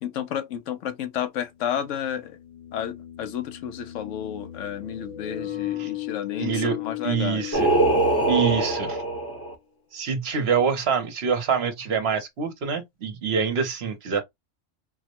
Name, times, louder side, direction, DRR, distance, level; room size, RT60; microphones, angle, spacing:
voice 1, 0.0-2.4 2.7-7.4 10.3-10.4, left 9 dB, 80° left, 0.9 m, -31 dB
sound 1, 0.6-0.7 2.1-9.0, left 14 dB, 55° left, 0.6 m, -36 dB
voice 2, 6.4-6.8 7.0-7.7 8.3-9.0 9.9-14.2, right 6 dB, 60° right, 0.9 m, -25 dB
Singing, 7.5-9.5, right 2 dB, 15° left, 0.7 m, -22 dB
4.1 x 2.1 x 2.8 m
omnidirectional pair, 1.3 m